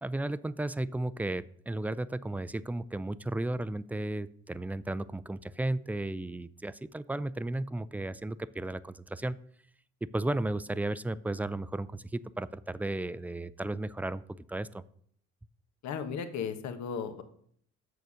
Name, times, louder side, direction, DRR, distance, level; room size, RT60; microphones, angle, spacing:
voice 1, 0.0-9.4 10.1-14.8, right 2 dB, 5° right, 15 dB, 0.4 m, -34 dB
voice 2, 15.8-17.2, left 6 dB, 70° left, 9 dB, 1.2 m, -35 dB
7.0 x 6.6 x 6.3 m, 0.64 s
supercardioid pair, 75°, 30 cm